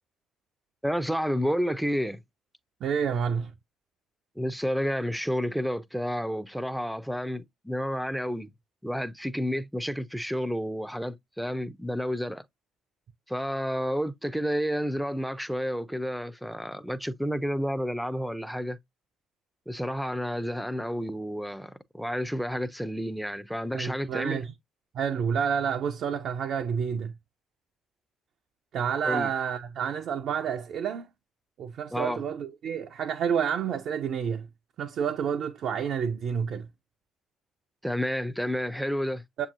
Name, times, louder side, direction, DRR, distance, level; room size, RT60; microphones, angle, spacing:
voice 1, 0.8-2.2 4.4-8.5 8.8-12.4 13.3-18.8 19.7-24.4 29.0-29.3 31.9-32.2 37.8-39.5, equal, ahead, 0.5 m, -30 dB
voice 2, 2.8-3.5 23.7-24.5 24.9-27.1 28.7-31.1 31.6-34.5 34.8-36.7 39.4-39.5, right 7 dB, 55° right, 0.4 m, -29 dB
7.0 x 2.7 x 2.5 m
figure-of-eight pair, 50°, 0 cm